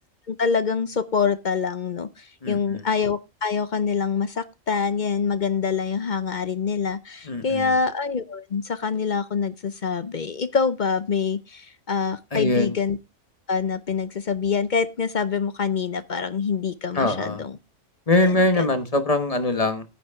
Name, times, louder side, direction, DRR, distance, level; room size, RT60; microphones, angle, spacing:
voice 1, 0.3-13.0 13.5-17.5 18.2-18.6, left 5 dB, 45° left, 0.6 m, -25 dB
voice 2, 2.4-2.8 7.2-7.8 12.3-12.8 16.9-17.4 18.1-19.8, left 2 dB, 30° left, 1.2 m, -22 dB
9.8 x 9.3 x 3.5 m
omnidirectional pair, 1.4 m